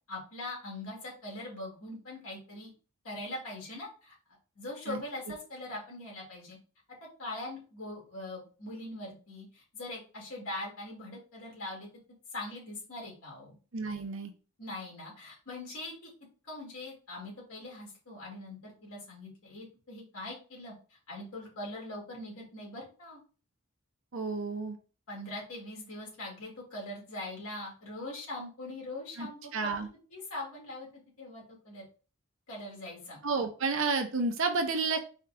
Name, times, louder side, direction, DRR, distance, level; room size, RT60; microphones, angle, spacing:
voice 1, 0.1-2.7 3.0-4.1 4.6-6.6 7.0-11.9 12.3-13.6 14.6-16.1 16.5-23.2 25.1-29.8 30.1-31.8 32.5-33.2, left 1 dB, 80° left, -3 dB, 2.3 m, -42 dB
voice 2, 13.7-14.3 24.1-24.8 29.2-29.9 33.2-35.0, right 4 dB, 60° right, 5 dB, 0.7 m, -31 dB
4.5 x 2.4 x 3.6 m, 0.36 s
head